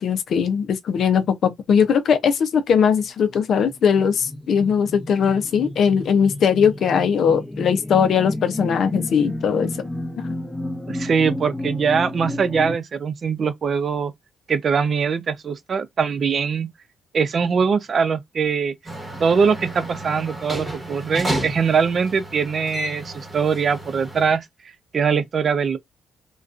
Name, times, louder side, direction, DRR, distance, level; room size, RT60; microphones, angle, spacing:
voice 1, 0.0-9.7 10.2-10.3, left 7 dB, 65° left, 0.5 m, -20 dB
sound 1, 3.0-12.7, left 1 dB, 15° left, 0.8 m, -32 dB
voice 2, 10.9-14.1 14.5-16.7 17.1-18.7 19.2-24.5 24.9-25.8, right 6 dB, 50° right, 0.5 m, -22 dB
sound 2, 18.9-24.4, right 1 dB, 15° right, 1.1 m, -31 dB
2.3 x 2.2 x 2.4 m
cardioid pair, 80°, 0 cm